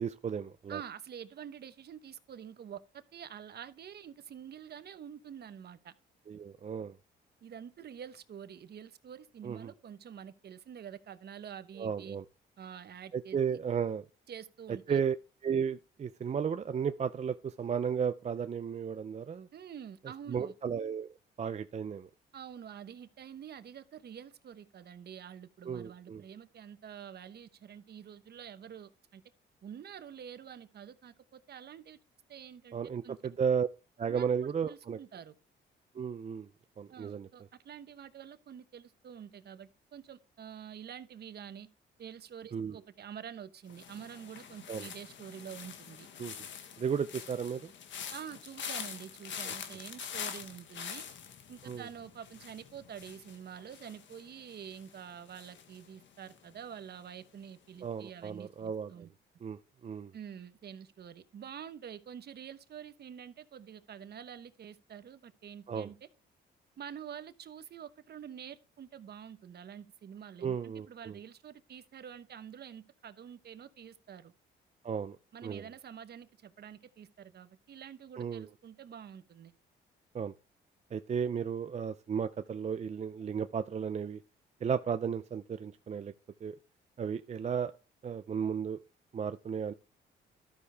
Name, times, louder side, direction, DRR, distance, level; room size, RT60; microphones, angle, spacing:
voice 1, 0.0-0.8 6.3-6.9 9.4-9.7 11.8-12.2 13.1-14.0 14.9-15.2 15.4-19.5 20.3-21.1 21.4-22.1 25.6-26.2 32.7-33.7 34.0-35.0 35.9-36.5 36.8-37.3 42.5-42.8 44.7-44.9 46.2-46.4 46.8-47.7 49.5-49.6 51.6-51.9 57.8-59.1 59.4-60.1 65.7-65.9 70.4-71.2 74.8-75.2 75.4-75.6 78.2-78.5 80.1-80.3 80.9-84.2 84.6-86.1 86.4-86.6 87.0-87.7 88.0-88.8 89.1-89.7, right 7 dB, 35° right, 0.5 m, -34 dB
voice 2, 0.7-2.8 3.1-5.9 7.4-12.2 12.6-13.6 14.3-15.0 19.5-20.5 22.3-29.2 29.6-32.0 32.3-33.2 34.1-35.3 36.9-41.7 42.0-46.1 48.1-51.1 51.5-59.1 60.1-66.1 66.8-74.3 75.3-79.5, right 8 dB, 55° right, 1.0 m, -47 dB
sound 1, 43.7-56.7 57.0-57.4, left 8 dB, 70° left, 1.5 m, -45 dB
12.5 x 6.5 x 3.5 m
cardioid pair, 90°, 20 cm